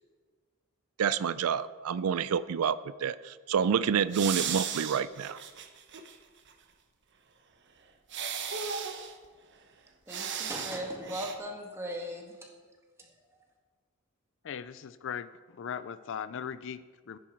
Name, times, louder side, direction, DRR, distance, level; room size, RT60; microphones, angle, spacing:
voice 1, 1.0-5.4, right 7 dB, 80° right, 0.4 m, -28 dB
sound 1, 4.1-6.1 6.5-6.6 8.1-9.1 10.1-10.8 11.1-11.3, right 7 dB, 55° right, 1.0 m, -35 dB
voice 2, 10.1-12.5 13.0-13.1, equal, 10° right, 1.8 m, -38 dB
voice 3, 14.4-17.2, left 7 dB, 60° left, 0.4 m, -39 dB
14.5 x 10.0 x 4.5 m
head